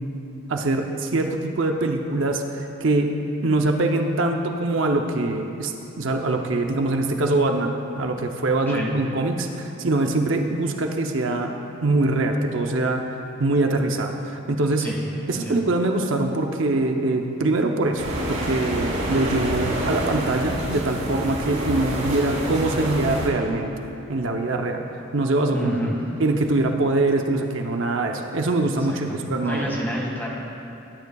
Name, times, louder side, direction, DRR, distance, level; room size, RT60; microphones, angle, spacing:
voice 1, 0.5-3.2 3.4-11.5 11.8-14.9 15.3-23.7 24.1-24.8 25.1-25.7 26.2-29.7, right 2 dB, 65° right, 3 dB, 0.7 m, -23 dB
sound 1, 18.0-23.3, equal, 85° right, 2.7 m, -27 dB
voice 2, 25.5-26.0 28.9-30.3, equal, 10° left, -4 dB, 1.8 m, -29 dB
21.0 x 9.5 x 2.3 m, 2.9 s
head